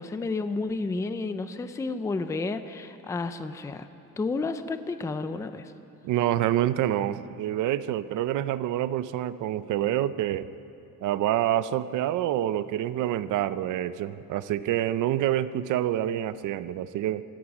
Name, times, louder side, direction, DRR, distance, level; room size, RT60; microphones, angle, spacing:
voice 1, 0.0-3.9 4.2-5.7, left 3 dB, 10° left, 10 dB, 0.4 m, -31 dB
voice 2, 6.0-10.5 11.0-17.2, right 12 dB, 55° right, 15 dB, 0.6 m, -27 dB
26.0 x 16.5 x 6.1 m, 2.8 s
cardioid pair, 170°, 36 cm